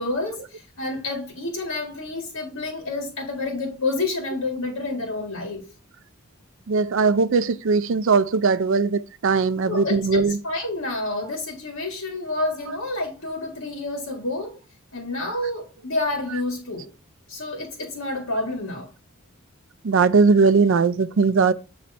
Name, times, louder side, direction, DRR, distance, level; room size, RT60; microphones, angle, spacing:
voice 1, 0.0-5.7 9.7-14.6 14.9-16.9 17.3-18.9, left 2 dB, 65° left, 1.7 m, -29 dB
voice 2, 6.7-10.4 12.7-12.8 16.3-16.4 19.8-21.5, right 4 dB, 60° right, 0.4 m, -19 dB
7.9 x 3.2 x 4.1 m
head